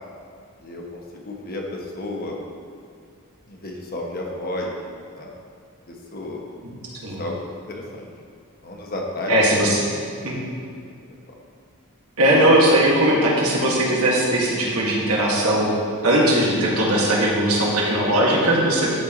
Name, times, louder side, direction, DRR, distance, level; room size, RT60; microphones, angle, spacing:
voice 1, 0.6-2.4 3.5-4.7 5.1-5.3 5.9-6.4 7.2-8.1 8.6-9.3 11.3-11.4, left 1 dB, 40° left, 0 dB, 1.1 m, -32 dB
voice 2, 9.3-9.8 10.2-10.4 12.2-15.7 16.0-18.9, right 1 dB, 75° right, -4 dB, 2.0 m, -19 dB
12.5 x 4.6 x 3.9 m, 2.4 s
head